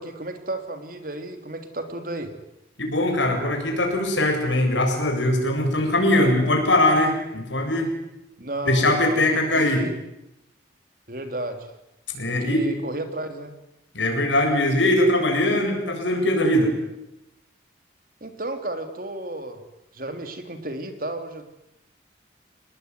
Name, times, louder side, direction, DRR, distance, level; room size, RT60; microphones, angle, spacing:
voice 1, 0.0-2.3 8.4-9.9 11.1-11.7 12.3-13.5 18.2-19.6 19.9-21.5, right 1 dB, 50° right, 8 dB, 3.4 m, -33 dB
voice 2, 2.8-7.9 8.6-9.8 12.1-12.6 13.9-16.7, left 1 dB, 85° left, 3 dB, 7.8 m, -21 dB
28.0 x 20.5 x 9.8 m, 0.88 s
head